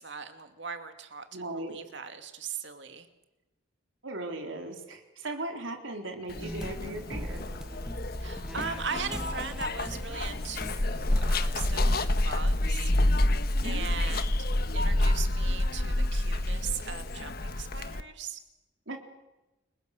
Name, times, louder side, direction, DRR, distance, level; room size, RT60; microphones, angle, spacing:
voice 1, 0.0-3.1 8.2-12.9 13.6-14.5 14.7-18.4, right 6 dB, 65° right, 7 dB, 2.5 m, -39 dB
voice 2, 1.3-1.8 4.0-7.4 13.6-13.9 18.9-19.0, right 2 dB, 85° right, 3 dB, 3.8 m, -37 dB
Zipper (clothing), 6.3-18.0, left 1 dB, 50° left, 1.3 m, -28 dB
sound 1, 6.4-12.0, equal, 5° right, 1.4 m, -40 dB
29.5 x 23.5 x 6.7 m, 1.0 s
head